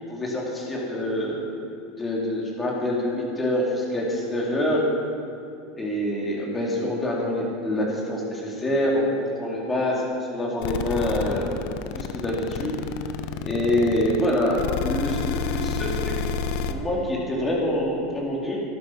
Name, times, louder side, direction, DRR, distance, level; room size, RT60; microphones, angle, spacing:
voice 1, 0.1-1.4 2.0-4.8 5.7-10.0 10.3-11.5 11.9-12.8 13.4-16.1 16.7-18.6, left 1 dB, 20° left, -4 dB, 4.1 m, -26 dB
sound 1, 10.6-16.7, left 7 dB, 65° left, 0.9 m, -29 dB
13.0 x 11.5 x 6.0 m, 2.5 s
hypercardioid pair, 105°, 0 cm